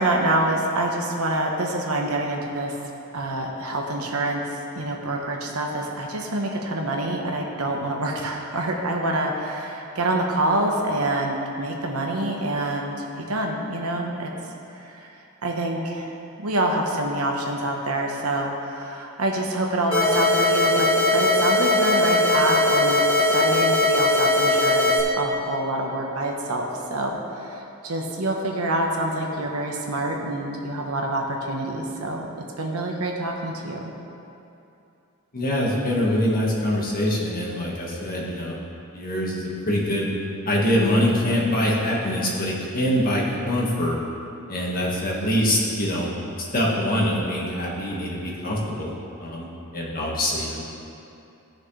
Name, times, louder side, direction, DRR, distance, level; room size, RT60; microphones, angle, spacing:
voice 1, 0.0-2.8 3.1-14.3 14.7-15.0 15.4-32.3 32.6-33.8, right 1 dB, 75° right, 0 dB, 1.2 m, -26 dB
sound 1, 19.9-25.0, left 2 dB, 25° left, 2.1 m, -20 dB
voice 2, 35.3-38.6 38.9-40.1 40.5-44.0 44.5-46.1 46.4-48.9 49.2-49.5 49.7-50.6, equal, 40° left, -4 dB, 1.8 m, -24 dB
16.5 x 6.4 x 3.4 m, 2.8 s
head